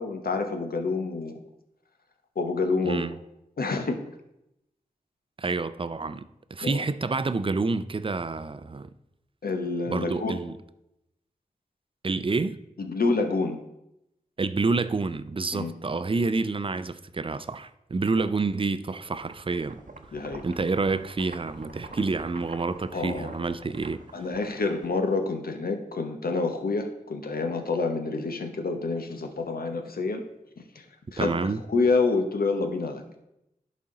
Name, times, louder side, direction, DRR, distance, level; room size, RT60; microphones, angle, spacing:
voice 1, 0.0-1.4 2.4-3.1 3.6-4.0 6.6-6.8 9.4-10.3 12.8-13.6 15.5-15.7 20.1-20.4 22.9-23.3 24.1-30.2 30.7-30.8 31.1-31.4 31.7-33.0, left 3 dB, 85° left, 0.8 m, -27 dB
voice 2, 2.8-3.2 5.4-6.3 6.5-8.9 9.9-10.5 12.0-12.6 14.4-19.8 20.4-24.2 31.2-31.6, right 3 dB, 35° right, 0.4 m, -28 dB
sound 1, 19.1-25.3, right 3 dB, 60° right, 0.8 m, -46 dB
11.0 x 4.3 x 3.8 m
cardioid pair, 40°, 15 cm